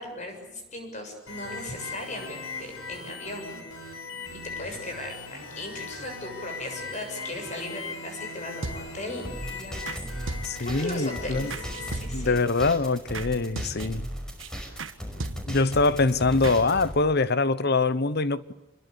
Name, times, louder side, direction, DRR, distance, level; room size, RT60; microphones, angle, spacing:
voice 1, 0.0-9.2 9.5-10.1 10.6-12.4, left 1 dB, 35° left, 7.1 m, -38 dB
sound 1, 1.3-11.9, left 3 dB, 80° left, 6.0 m, -39 dB
sound 2, 8.6-9.2 9.9-10.0 10.3-10.9 11.5-12.4 13.1-13.3 13.6-14.1 14.4-14.5 14.8-14.9 15.2-15.7 16.4-16.6, right 2 dB, 65° right, 1.5 m, -36 dB
sound 3, 9.2-16.9, equal, 5° left, 5.4 m, -37 dB
voice 2, 10.4-11.5 12.1-14.1 15.5-18.5, left 3 dB, 50° left, 1.0 m, -24 dB
27.0 x 22.0 x 8.4 m
head